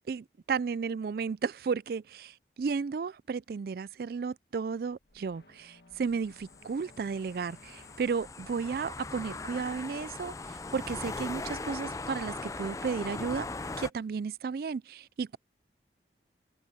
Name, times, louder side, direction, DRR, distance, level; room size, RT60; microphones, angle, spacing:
voice 1, 0.1-13.5 13.8-15.4, right 5 dB, 55° right, 0.3 m, -33 dB
sound 1, 4.7-8.6, left 2 dB, 65° left, 1.4 m, -59 dB
sound 2, 6.1-13.9, left 3 dB, 20° left, 0.4 m, -40 dB
head